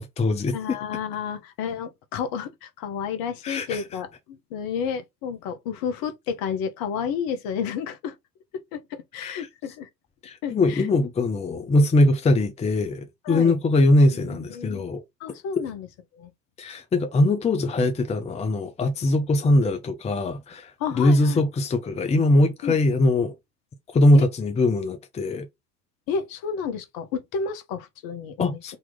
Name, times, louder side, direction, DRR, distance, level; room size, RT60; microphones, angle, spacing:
voice 1, 0.0-0.5 3.4-3.8 9.2-9.5 10.2-15.0 16.6-23.3 23.9-25.5 28.4-28.8, left 2 dB, 15° left, 0.7 m, -21 dB
voice 2, 0.5-8.1 8.7-9.9 10.4-10.9 13.2-13.5 14.1-14.8 15.2-15.9 16.2-16.3 19.4-19.6 20.8-21.4 22.6-22.8 24.1-24.2 26.1-28.8, left 7 dB, 45° left, 1.1 m, -31 dB
4.0 x 3.0 x 3.6 m
figure-of-eight pair, 75°, 49 cm